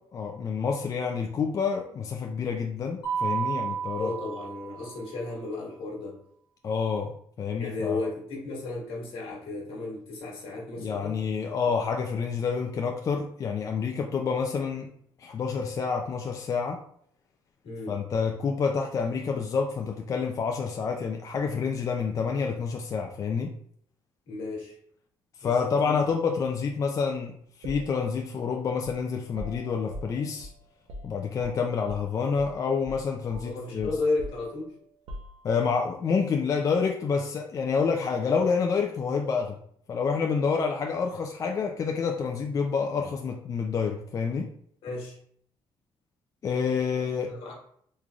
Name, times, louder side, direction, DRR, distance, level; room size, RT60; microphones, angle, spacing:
voice 1, 0.1-4.1 6.6-7.1 7.4-8.0 10.8-14.9 15.2-16.8 17.9-23.5 25.4-30.5 31.0-33.9 35.4-39.5 39.9-44.5 46.4-47.3, left 5 dB, 35° left, 2 dB, 0.4 m, -28 dB
Mallet percussion, 3.0-5.1, right 7 dB, 55° left, 1.0 m, -32 dB
voice 2, 3.9-6.2 7.6-11.2 11.6-11.7 17.6-18.0 24.3-24.8 25.4-25.5 25.8-26.0 33.4-34.7 44.8-45.2 47.3-47.5, left 3 dB, 75° left, -2 dB, 1.4 m, -34 dB
sound 1, 27.6-32.1 32.3-32.6 32.8-35.8, equal, 90° right, 0.6 m, -43 dB
3.7 x 3.2 x 2.3 m, 0.64 s
cardioid pair, 130°, 9 cm